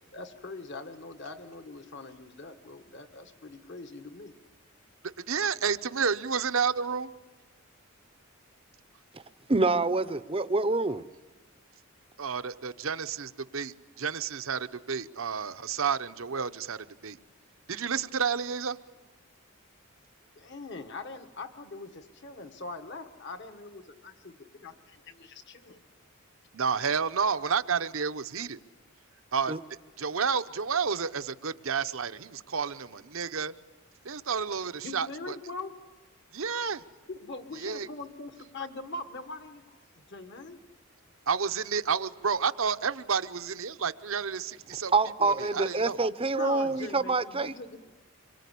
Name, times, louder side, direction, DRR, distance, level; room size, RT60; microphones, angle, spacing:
voice 1, 0.1-4.3 20.3-25.8 34.8-35.7 37.1-40.6 46.3-48.0, left 3 dB, 55° left, 8 dB, 1.6 m, -42 dB
voice 2, 5.3-7.1 12.2-17.2 17.7-18.8 26.5-28.6 29.3-29.5 30.0-33.5 34.0-35.4 36.3-36.8 37.6-37.9 41.3-44.9 45.2-46.0, right 6 dB, 65° right, 11 dB, 0.9 m, -30 dB
voice 3, 9.5-11.1 29.5-29.6 44.9-47.6, right 3 dB, 25° right, 14 dB, 0.7 m, -26 dB
26.0 x 23.0 x 8.4 m, 1.3 s
head